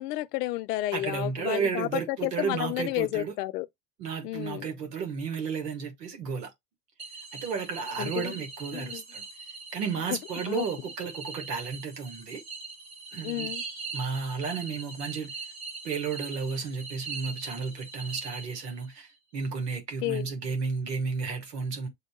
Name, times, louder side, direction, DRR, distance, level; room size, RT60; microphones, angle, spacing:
voice 1, 0.0-3.7 4.2-4.7 8.0-8.4 8.7-9.0 10.1-10.2 10.5-10.7 13.2-13.6 20.0-20.3, left 17 dB, 80° left, 0.6 m, -31 dB
voice 2, 0.9-3.3 4.0-6.5 7.3-9.2 9.7-12.4 13.1-13.5 13.9-15.5 15.8-21.9, right 5 dB, 85° right, 1.6 m, -33 dB
sound 1, 7.0-19.0, right 4 dB, 35° right, 1.7 m, -41 dB
7.5 x 2.7 x 2.2 m
hypercardioid pair, 90°, 48 cm